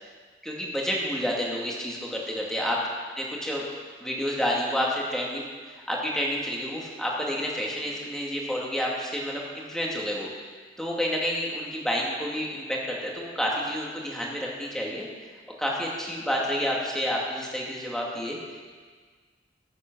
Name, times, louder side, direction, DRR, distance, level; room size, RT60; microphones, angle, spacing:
voice 1, 0.4-2.8 3.2-3.6 4.0-10.3 10.8-15.1 15.6-18.6, equal, 5° left, -3 dB, 2.4 m, -29 dB
14.5 x 8.2 x 6.2 m, 1.5 s
head